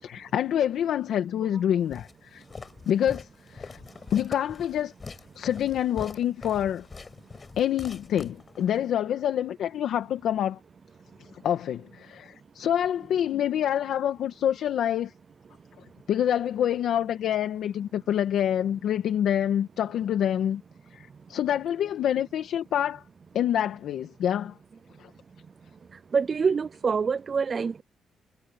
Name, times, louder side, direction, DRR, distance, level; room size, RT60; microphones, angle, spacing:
voice 1, 0.0-2.4 2.8-3.8 4.1-4.9 5.3-6.9 7.6-10.6 11.4-15.1 16.1-20.6 20.9-23.0 23.3-24.5 25.0-25.1, left 10 dB, 75° left, 1.8 m, -27 dB
Walk footsteps, 1.9-8.8, left 4 dB, 30° left, 6.8 m, -43 dB
voice 2, 26.1-27.8, right 5 dB, 40° right, 0.5 m, -25 dB
cardioid pair, 95°, 0 cm